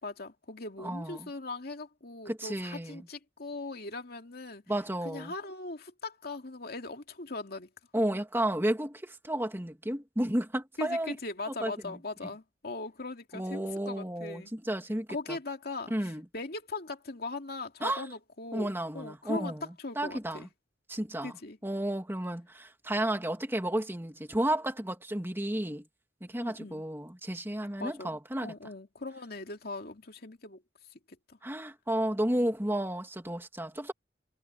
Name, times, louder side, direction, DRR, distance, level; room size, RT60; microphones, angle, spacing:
voice 1, 0.0-4.6 5.0-7.7 10.8-14.5 15.1-20.5 21.2-21.6 26.4-26.8 27.8-30.6 31.3-31.4, left 3 dB, 60° left, 2.5 m, -40 dB
voice 2, 0.8-1.3 2.3-3.0 4.7-5.3 7.9-11.2 11.6-12.0 13.3-15.4 15.9-16.2 17.8-18.1 18.5-20.5 20.9-21.3 21.6-25.9 26.2-28.5 31.4-33.9, right 1 dB, 15° right, 2.3 m, -32 dB
head